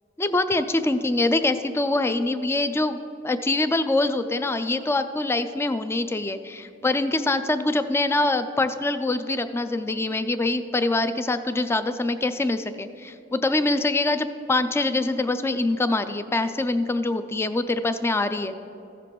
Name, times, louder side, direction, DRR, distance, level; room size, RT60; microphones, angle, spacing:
voice 1, 0.2-18.5, left 2 dB, 15° left, 11 dB, 0.3 m, -24 dB
15.0 x 6.7 x 3.0 m, 2.8 s
head